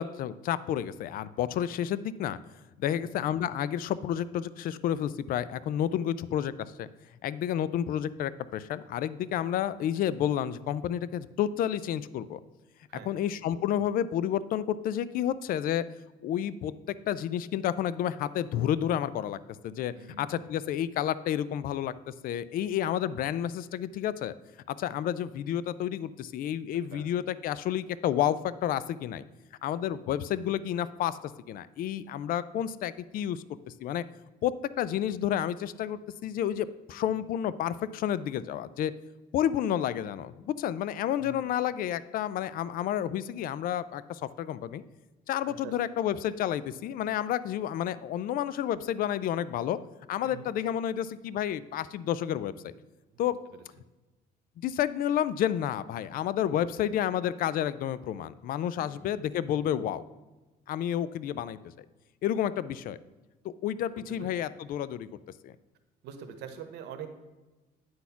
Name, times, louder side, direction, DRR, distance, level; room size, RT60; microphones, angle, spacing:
voice 1, 0.0-2.4 2.8-6.9 7.2-12.4 13.1-15.8 16.2-16.7 17.1-19.4 19.6-24.3 24.7-29.2 29.6-33.4 33.8-34.0 34.4-38.9 39.3-44.8 45.3-49.8 50.1-52.7 53.2-53.4 54.6-60.1 60.7-61.6 62.2-63.0 63.4-65.1 65.4-65.5, left 10 dB, 60° left, 17 dB, 0.4 m, -30 dB
voice 2, 19.9-20.6 26.9-27.1 41.2-41.4 45.4-45.7 50.2-50.5 53.1-53.2 53.5-53.6 58.8-59.3 64.2-64.3 66.0-67.1, right 8 dB, 85° right, 7 dB, 1.0 m, -45 dB
9.4 x 4.2 x 5.7 m, 1.1 s
cardioid pair, 110°, 17 cm